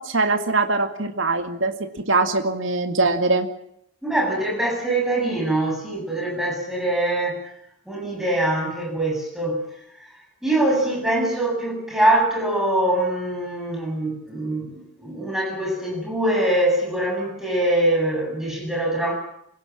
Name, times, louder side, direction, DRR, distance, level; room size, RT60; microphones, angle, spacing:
voice 1, 0.0-1.7 2.1-3.5, right 3 dB, 65° right, 6 dB, 2.1 m, -22 dB
voice 2, 4.0-7.5 7.9-9.7 10.4-19.1, right 1 dB, ahead, 0 dB, 8.0 m, -23 dB
26.0 x 17.5 x 7.5 m, 0.75 s
head